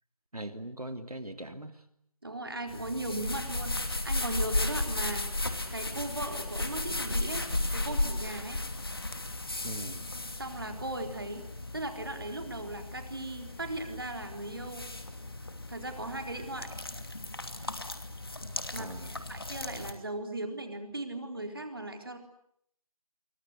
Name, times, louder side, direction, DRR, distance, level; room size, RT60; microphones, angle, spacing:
voice 1, 0.3-1.8 9.6-10.1 18.7-19.2, right 1 dB, 85° right, 7 dB, 3.0 m, -41 dB
voice 2, 2.2-5.3 5.7-7.5 7.7-8.6 10.4-11.4 11.7-14.8 15.7-16.7 18.7-22.2, right 2 dB, 40° right, 5 dB, 4.1 m, -38 dB
sound 1, 2.7-19.9, left 2 dB, 40° left, 2.7 m, -35 dB
29.0 x 24.5 x 8.2 m, 0.70 s
figure-of-eight pair, 175°, 19 cm